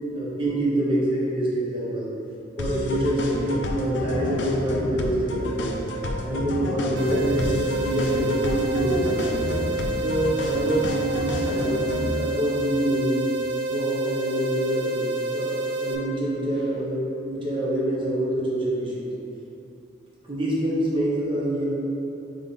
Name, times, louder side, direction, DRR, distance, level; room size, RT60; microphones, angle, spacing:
voice 1, 0.0-2.1 2.6-5.7 6.2-9.6 10.0-13.2 13.7-19.1 20.3-21.7, right 1 dB, 25° right, -7 dB, 0.8 m, -26 dB
sound 1, 2.6-12.2, left 1 dB, 60° left, 0.4 m, -30 dB
sound 2, 7.0-16.0, right 2 dB, 60° right, 0.4 m, -29 dB
3.6 x 3.4 x 3.8 m, 2.8 s
head